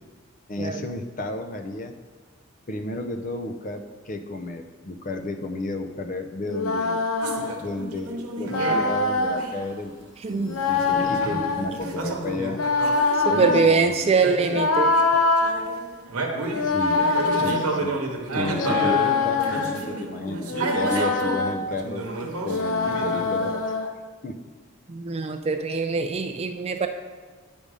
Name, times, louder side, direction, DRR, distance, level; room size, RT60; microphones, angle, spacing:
voice 1, 0.5-1.9 2.7-7.0 7.6-12.6 13.3-14.1 16.6-17.0 17.3-18.0 18.3-22.1 22.4-23.6 24.2-24.4, left 2 dB, 35° left, 6 dB, 0.5 m, -32 dB
sound 1, 6.5-7.6 8.5-9.4 10.5-11.7 12.5-13.7 14.5-15.6 16.5-17.6 18.5-19.9 20.5-21.5 22.5-23.9, left 3 dB, 75° left, 0.7 m, -24 dB
sound 2, 7.2-8.9 9.3-9.7 10.7-13.7 14.2-15.1 15.4-21.4 21.7-23.7, right 2 dB, 85° right, 1.0 m, -31 dB
sound 3, 9.0-12.4, equal, 60° left, 2.4 m, -46 dB
voice 2, 10.2-10.6 13.3-14.9 24.9-26.9, right 4 dB, 30° right, 7 dB, 0.3 m, -23 dB
8.7 x 5.3 x 4.9 m, 1.5 s
head